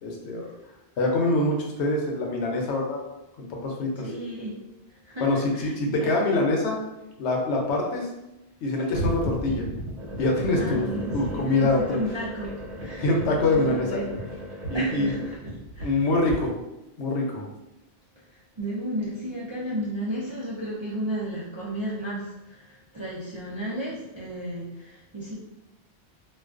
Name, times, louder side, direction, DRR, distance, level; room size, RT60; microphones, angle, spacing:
voice 1, 0.0-0.5 1.0-3.0 3.4-4.0 5.2-6.8 7.2-8.1 8.6-9.6 10.2-12.0 13.0-14.0 14.7-15.1 15.8-16.6 17.0-17.4, left 2 dB, 85° left, 0 dB, 0.9 m, -25 dB
voice 2, 4.0-4.5 4.9-6.1 10.5-13.1 13.4-14.1 14.7-15.3 15.7-16.0 18.1-25.3, equal, 40° right, -8 dB, 0.4 m, -33 dB
sound 1, 8.9-16.3, right 1 dB, 80° right, 1.1 m, -35 dB
2.3 x 2.3 x 2.3 m, 0.92 s
omnidirectional pair, 1.1 m